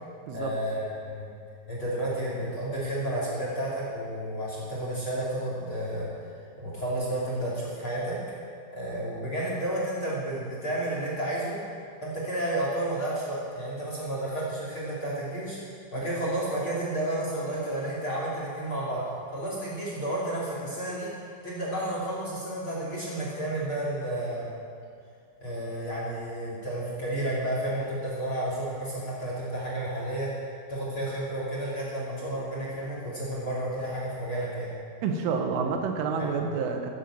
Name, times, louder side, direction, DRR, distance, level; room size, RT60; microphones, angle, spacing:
voice 1, 0.3-1.3 1.7-6.1 6.6-11.6 12.0-15.6 15.9-19.0 19.3-21.1 21.4-24.5 25.4-30.3 30.7-34.7 35.7-35.8 36.2-36.4, right 1 dB, 30° left, -5 dB, 2.7 m, -31 dB
voice 2, 35.0-36.9, right 5 dB, 80° right, 4 dB, 3.4 m, -28 dB
14.5 x 11.0 x 7.6 m, 2.2 s
omnidirectional pair, 5.9 m